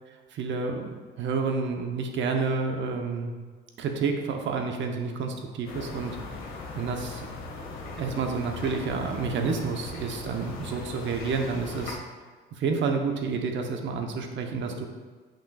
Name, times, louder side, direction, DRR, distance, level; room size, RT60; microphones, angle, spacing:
voice 1, 0.3-3.3 3.8-6.2 6.8-7.3 8.0-12.0 12.6-14.9, right 4 dB, 60° right, 3 dB, 0.8 m, -29 dB
sound 1, 5.7-11.9, left 3 dB, 75° left, 1.5 m, -39 dB
7.9 x 6.0 x 2.3 m, 1.4 s
cardioid pair, 135°, 21 cm